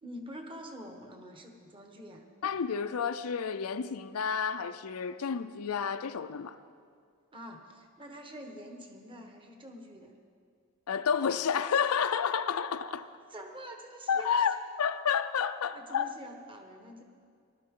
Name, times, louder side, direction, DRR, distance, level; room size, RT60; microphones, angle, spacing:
voice 1, 0.0-2.2 7.3-10.1 13.3-14.4 15.7-17.0, equal, 25° right, 1.3 m, -46 dB
voice 2, 2.4-6.6 10.9-13.1 14.1-16.1, left 7 dB, 90° left, 0.5 m, -30 dB
19.5 x 12.5 x 3.8 m
head